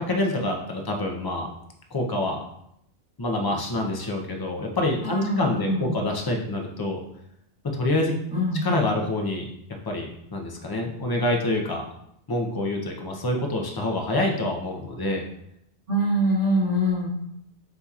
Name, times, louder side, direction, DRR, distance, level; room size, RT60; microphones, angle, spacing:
voice 1, 0.0-1.5 1.9-2.4 3.2-7.0 7.6-8.2 8.6-9.5 9.8-11.9 12.3-15.2, left 1 dB, 30° left, 1 dB, 0.4 m, -26 dB
voice 2, 5.0-5.9 8.3-8.6 15.9-17.1, equal, 85° right, -8 dB, 2.3 m, -24 dB
6.9 x 2.8 x 2.4 m, 0.76 s
omnidirectional pair, 1.2 m